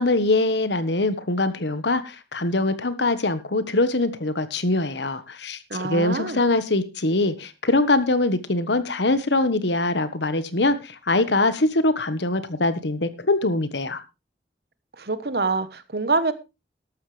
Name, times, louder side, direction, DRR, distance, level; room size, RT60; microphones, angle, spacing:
voice 1, 0.0-14.0, left 2 dB, 75° left, 12 dB, 1.4 m, -23 dB
voice 2, 5.7-6.4 15.0-16.3, right 3 dB, 60° right, 13 dB, 1.2 m, -25 dB
14.0 x 12.0 x 3.4 m, 0.27 s
head